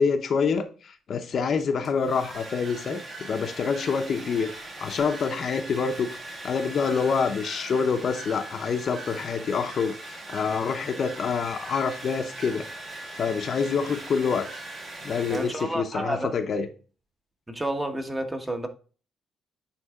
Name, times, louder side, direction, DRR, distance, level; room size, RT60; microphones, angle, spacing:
voice 1, 0.0-4.5 4.8-12.7 13.1-14.5 15.0-16.7, left 5 dB, 55° left, 7 dB, 0.8 m, -27 dB
Domestic sounds home sounds, 1.6-15.9, right 2 dB, 40° right, 2.2 m, -41 dB
Bird / Water, 2.3-15.5, right 4 dB, 60° right, 2.7 m, -47 dB
voice 2, 15.3-16.3 17.5-18.7, right 1 dB, 15° right, 5 dB, 1.3 m, -30 dB
9.5 x 3.4 x 3.6 m, 0.37 s
cardioid pair, 90°, 0 cm